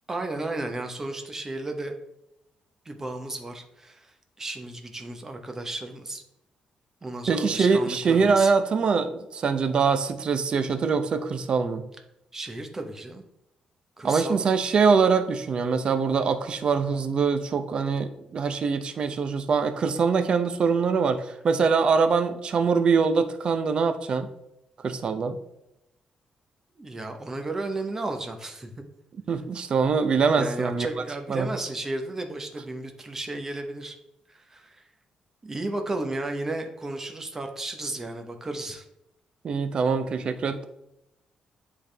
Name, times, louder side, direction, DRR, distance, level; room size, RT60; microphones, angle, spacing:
voice 1, 0.1-1.9 2.8-6.2 7.0-8.5 12.3-13.2 14.0-14.4 26.8-28.7 30.4-34.0 34.3-34.8 35.4-38.8, right 2 dB, 20° right, 5 dB, 0.8 m, -33 dB
voice 2, 7.3-11.8 14.0-24.3 24.8-25.4 29.3-30.9 31.3-31.5 39.4-40.7, right 5 dB, 45° right, 9 dB, 0.5 m, -23 dB
10.0 x 3.5 x 3.3 m, 0.84 s
cardioid pair, 150°, 2 cm